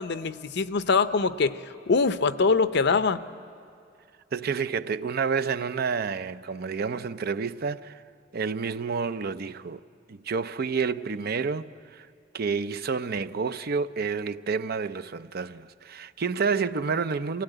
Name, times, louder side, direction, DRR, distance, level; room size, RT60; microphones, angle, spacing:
voice 1, 0.0-1.6 1.9-3.2, left 4 dB, 65° left, 0.6 m, -23 dB
voice 2, 4.3-8.0 8.3-9.8 10.1-12.1 12.3-17.4, right 5 dB, 55° right, 0.5 m, -29 dB
26.5 x 17.0 x 9.0 m
head